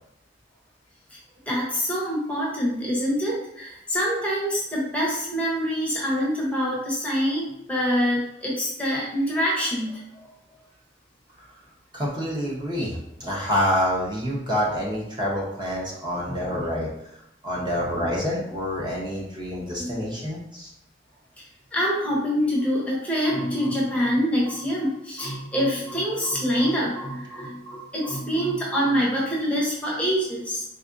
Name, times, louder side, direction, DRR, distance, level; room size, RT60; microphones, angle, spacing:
voice 1, 1.5-10.2 16.3-16.6 17.9-18.0 19.8-20.0 21.7-30.6, equal, 10° left, -4 dB, 0.8 m, -25 dB
voice 2, 11.9-16.9 17.4-20.7, equal, 25° right, -4 dB, 0.9 m, -27 dB
4.2 x 3.4 x 2.6 m, 0.81 s
head